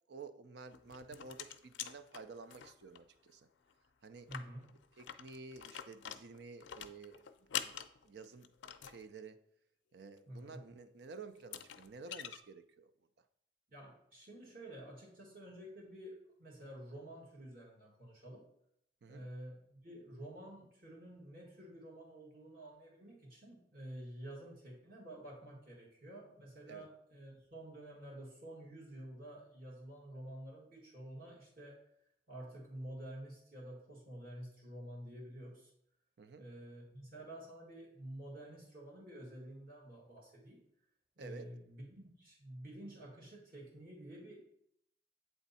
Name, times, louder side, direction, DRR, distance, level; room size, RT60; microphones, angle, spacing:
voice 1, 0.1-3.5 4.0-4.3 5.0-7.2 7.6-7.7 8.0-8.5 8.8-9.4 9.9-12.9 19.0-19.3 26.7-26.9 36.2-36.4 41.2-41.5, right 4 dB, 65° right, 10 dB, 0.4 m, -51 dB
sound 1, 0.7-3.0 3.3-3.4 3.7-3.8 4.2-9.0 10.8-10.9 11.4-12.4, left 10 dB, 85° left, 0.4 m, -45 dB
voice 2, 4.3-4.7 10.3-10.6 13.7-18.4 19.1-31.8 32.3-35.7 36.4-40.6 41.2-44.4, right 1 dB, 50° right, -3 dB, 1.9 m, -50 dB
8.1 x 3.5 x 4.1 m, 0.72 s
head